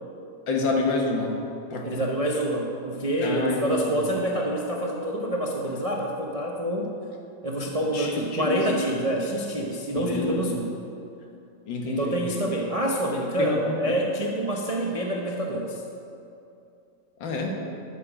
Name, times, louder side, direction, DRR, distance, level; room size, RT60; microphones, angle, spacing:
voice 1, 0.5-1.3 1.7-1.9 3.2-4.0 7.9-8.7 10.0-10.4 11.7-12.3 13.4-13.8 17.2-17.6, left 3 dB, 85° left, 0 dB, 2.0 m, -28 dB
voice 2, 1.8-6.9 7.4-10.8 11.8-15.8, right 1 dB, 45° right, -1 dB, 0.4 m, -27 dB
12.5 x 7.7 x 5.0 m, 2.7 s
omnidirectional pair, 2.0 m